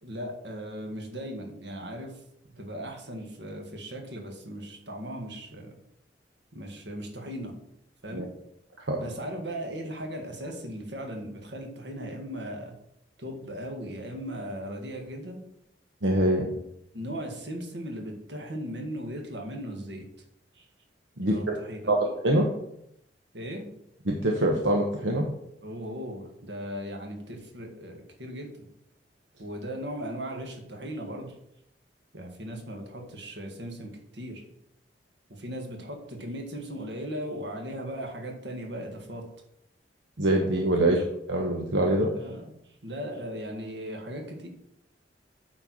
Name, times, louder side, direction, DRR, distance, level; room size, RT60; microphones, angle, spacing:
voice 1, 0.0-2.2 2.6-5.7 6.5-7.6 8.0-8.3 9.0-12.8 13.2-15.4 16.9-20.1 20.5-20.7 21.2-22.0 23.3-23.7 25.6-28.7 29.4-31.4 32.1-34.4 35.3-39.2 40.8-41.0 42.1-44.5, equal, 70° right, 2 dB, 1.8 m, -38 dB
voice 2, 16.0-16.5 21.2-21.6 21.9-22.5 24.1-25.3 40.2-41.0 41.3-42.1, right 1 dB, 85° right, 0 dB, 1.1 m, -24 dB
8.7 x 4.5 x 6.2 m, 0.77 s
head